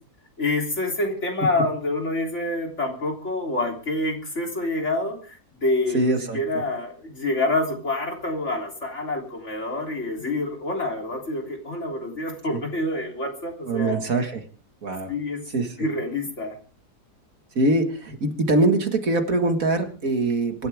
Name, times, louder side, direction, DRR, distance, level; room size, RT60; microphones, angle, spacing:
voice 1, 0.4-14.0 15.1-15.4 15.8-16.6, left 2 dB, 45° left, 2 dB, 3.8 m, -27 dB
voice 2, 5.9-6.4 13.7-14.4 14.8-15.1 15.5-15.9 17.6-20.7, right 2 dB, 55° right, 6 dB, 2.2 m, -23 dB
25.0 x 12.5 x 3.6 m, 0.39 s
omnidirectional pair, 1.7 m